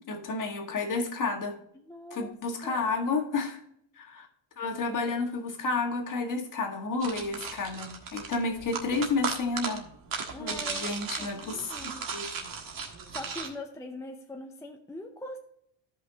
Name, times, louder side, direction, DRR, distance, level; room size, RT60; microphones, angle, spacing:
voice 1, 0.1-1.6 2.1-3.6 4.0-4.3 4.6-9.9 10.4-11.7 12.1-12.3, left 3 dB, 40° left, 3 dB, 1.7 m, -31 dB
voice 2, 1.7-2.3 2.6-3.1 10.3-10.9 11.2-12.1 13.1-15.4, left 1 dB, 5° left, 3 dB, 0.5 m, -42 dB
sound 1, 7.0-13.5, right 5 dB, 45° right, 1.6 m, -36 dB
14.0 x 5.6 x 2.8 m, 0.72 s
cardioid pair, 140°, 49 cm